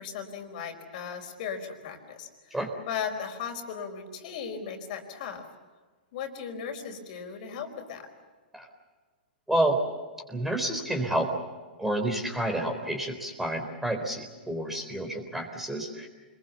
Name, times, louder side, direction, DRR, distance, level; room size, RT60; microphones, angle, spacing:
voice 1, 0.0-2.6 2.9-5.4 6.1-8.1, left 7 dB, 55° left, 5 dB, 4.7 m, -37 dB
voice 2, 9.5-9.8 10.3-11.3 11.8-16.1, right 1 dB, 5° right, 4 dB, 3.9 m, -29 dB
27.0 x 21.5 x 7.1 m, 1.4 s
hypercardioid pair, 120°, 5 cm